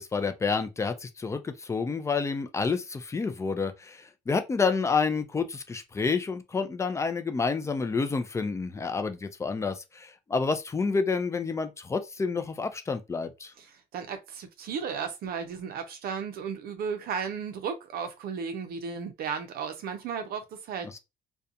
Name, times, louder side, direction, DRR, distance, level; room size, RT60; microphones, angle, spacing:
voice 1, 0.0-13.5 20.9-21.0, left 4 dB, 15° left, 0.4 m, -29 dB
voice 2, 13.6-21.0, right 6 dB, 65° right, 0.6 m, -35 dB
2.4 x 2.2 x 2.7 m
cardioid pair, 110°, 17 cm